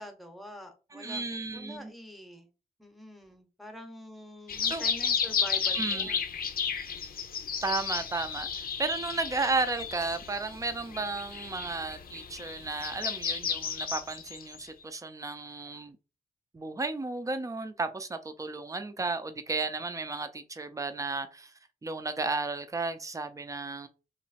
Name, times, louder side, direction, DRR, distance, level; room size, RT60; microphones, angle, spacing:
voice 1, 0.0-1.2 1.5-2.5 2.8-6.2, equal, ahead, 0.9 m, -45 dB
voice 2, 0.9-1.9 4.7-4.8 5.7-6.2 7.6-16.0 16.5-21.5 21.8-23.9, right 3 dB, 20° right, 0.5 m, -33 dB
sound 1, 4.5-14.7, left 7 dB, 70° left, 0.6 m, -33 dB
3.3 x 3.0 x 4.2 m
wide cardioid pair, 120°, 16 cm